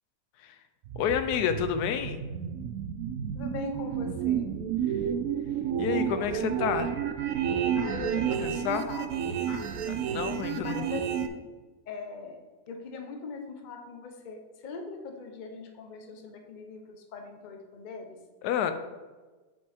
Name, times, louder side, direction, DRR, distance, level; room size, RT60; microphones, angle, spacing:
sound 1, 0.8-11.3, right 8 dB, 70° right, 0.9 m, -31 dB
voice 1, 1.0-2.2 5.8-6.9 8.4-8.9 9.9-10.8 18.4-18.7, left 8 dB, 90° left, 9 dB, 1.1 m, -29 dB
voice 2, 3.3-4.5 7.8-9.6 10.6-11.4 11.9-12.4 12.7-18.2, left 4 dB, 40° left, 4 dB, 0.7 m, -41 dB
7.8 x 5.3 x 3.4 m, 1.3 s
omnidirectional pair, 1.6 m